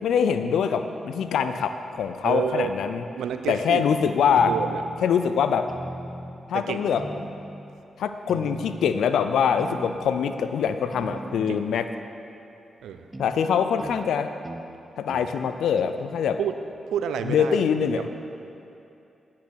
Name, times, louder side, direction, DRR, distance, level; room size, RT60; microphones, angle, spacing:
voice 1, 0.0-3.0 3.5-4.5 5.0-5.7 6.5-7.3 8.0-11.9 13.2-14.3 15.0-16.4 17.3-18.1, left 7 dB, 80° left, 9 dB, 0.4 m, -24 dB
voice 2, 2.2-2.7 3.2-3.8 4.5-4.8 6.5-6.8 11.5-11.6 12.8-13.1 16.4-16.6 16.9-17.6 18.0-18.1, right 8 dB, 80° right, 8 dB, 0.5 m, -29 dB
sound 1, 4.4-5.1 5.7-6.4 7.0-7.7 8.3-9.0 9.6-10.3 10.9-11.6 13.1-13.3 13.8-14.0 14.4-14.7 15.1-15.3 15.8-16.0, right 1 dB, 25° right, 0.9 m, -38 dB
9.8 x 7.3 x 6.2 m, 2.7 s
supercardioid pair, 40°, 0 cm